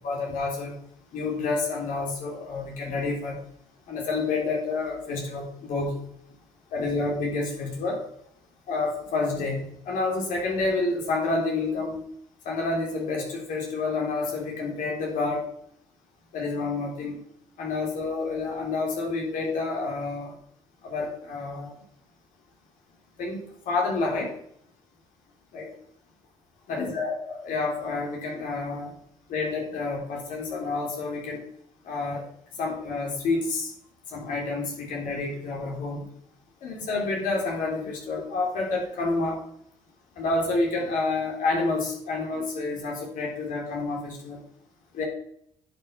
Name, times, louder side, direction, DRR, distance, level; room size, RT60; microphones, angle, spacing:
voice 1, 0.0-0.8 1.1-3.4 3.9-6.0 6.7-8.1 8.7-12.0 12.5-15.5 16.3-17.2 17.6-20.3 20.8-21.7 23.2-24.3 25.5-25.7 26.7-28.9 29.3-31.4 31.8-32.2 32.6-33.7 34.1-36.1 36.6-39.4 40.2-44.4 44.9-45.0, left 3 dB, 75° left, -1 dB, 3.6 m, -29 dB
10.5 x 5.9 x 5.9 m, 0.69 s
supercardioid pair, 60°, 14 cm